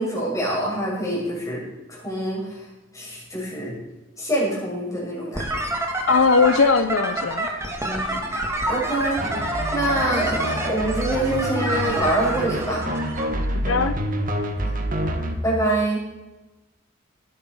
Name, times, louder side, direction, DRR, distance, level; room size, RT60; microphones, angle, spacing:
voice 1, 0.0-1.6 1.9-2.6 2.9-3.7 4.2-5.4 7.8-8.3 8.7-9.2 9.7-12.8 15.4-16.0, right 1 dB, 15° left, -4 dB, 6.8 m, -25 dB
sound 1, 5.3-13.2, right 1 dB, 15° right, 2.2 m, -28 dB
voice 2, 6.1-7.5 13.7-13.9, left 4 dB, 70° left, 11 dB, 0.7 m, -19 dB
sound 2, 9.2-15.4, equal, 45° right, 1.9 m, -27 dB
19.0 x 11.0 x 4.7 m, 1.0 s
head